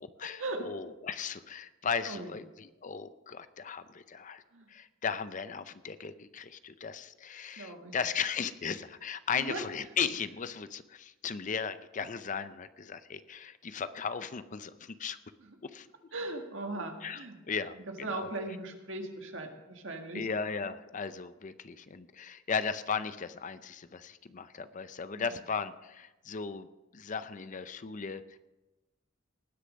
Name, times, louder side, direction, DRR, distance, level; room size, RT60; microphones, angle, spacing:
voice 1, 0.0-4.4 4.7-15.2 15.6-15.9 16.8-18.3 20.1-26.7 26.9-28.4, left 6 dB, 40° left, 13 dB, 0.5 m, -36 dB
voice 2, 7.6-8.0 9.3-9.6 15.4-15.5 16.1-17.4 17.8-20.3 25.1-25.4, right 2 dB, 70° right, 4 dB, 1.7 m, -39 dB
19.0 x 6.8 x 5.2 m, 1.0 s
head